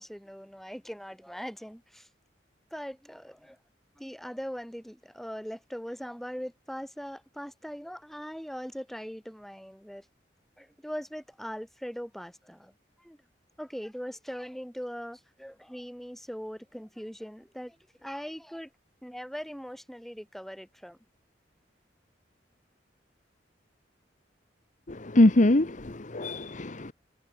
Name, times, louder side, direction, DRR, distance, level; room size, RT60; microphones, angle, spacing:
voice 1, 0.0-2.1 2.7-3.6 4.0-10.0 10.6-12.7 13.0-13.2 13.6-18.7 19.0-21.0, equal, ahead, 6.5 m, -40 dB
voice 2, 24.9-26.9, left 1 dB, 45° left, 1.2 m, -23 dB
head